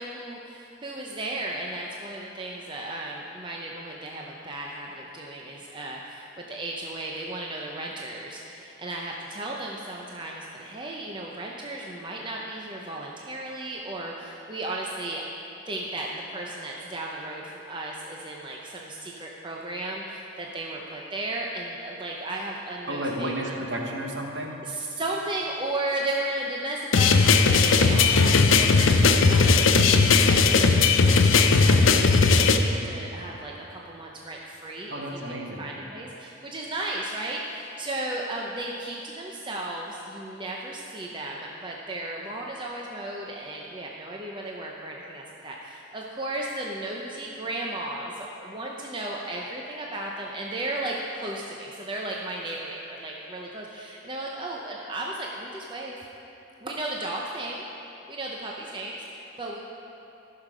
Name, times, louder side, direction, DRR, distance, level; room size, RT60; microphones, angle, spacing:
voice 1, 0.0-15.2 15.7-23.6 24.6-56.0 56.6-57.6 58.1-59.6, right 1 dB, 25° right, -2 dB, 0.6 m, -35 dB
voice 2, 22.9-24.6 34.9-35.7, right 1 dB, 60° right, 0 dB, 1.2 m, -32 dB
sound 1, 26.9-32.6, left 4 dB, 70° left, 0.6 m, -18 dB
14.5 x 6.6 x 5.0 m, 2.9 s
head